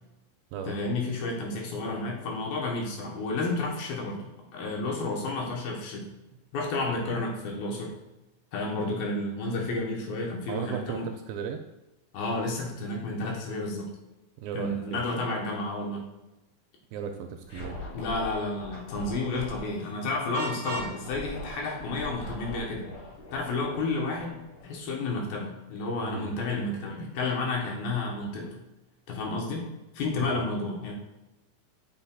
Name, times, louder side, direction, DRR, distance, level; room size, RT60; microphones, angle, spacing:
voice 1, 0.7-6.1 6.5-7.9 8.5-11.1 12.1-13.9 14.5-16.0 17.9-22.9 23.3-28.5 29.1-30.9, left 2 dB, 75° left, -1 dB, 2.9 m, -31 dB
voice 2, 10.5-11.6 14.4-15.0 16.9-17.8 26.0-26.3 30.2-30.4, right 7 dB, 80° right, 5 dB, 2.2 m, -36 dB
Scratching (performance technique), 17.4-19.8 20.7-25.0, left 1 dB, 50° left, 1.5 m, -41 dB
Vehicle horn car horn honking, 20.3-21.0, right 2 dB, 60° right, 1.8 m, -35 dB
6.9 x 6.0 x 2.3 m, 0.99 s
omnidirectional pair, 4.4 m